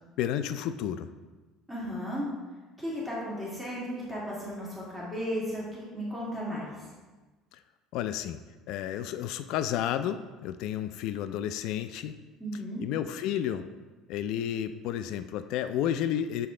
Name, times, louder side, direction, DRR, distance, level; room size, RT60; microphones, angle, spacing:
voice 1, 0.2-1.1 7.9-8.4 8.7-12.1 12.8-13.6 14.1-16.5, left 10 dB, 70° left, 11 dB, 0.3 m, -31 dB
voice 2, 1.7-2.3 2.8-6.7 12.4-12.9, equal, ahead, -8 dB, 2.0 m, -35 dB
6.8 x 4.1 x 3.7 m, 1.3 s
cardioid pair, 115°, 0 cm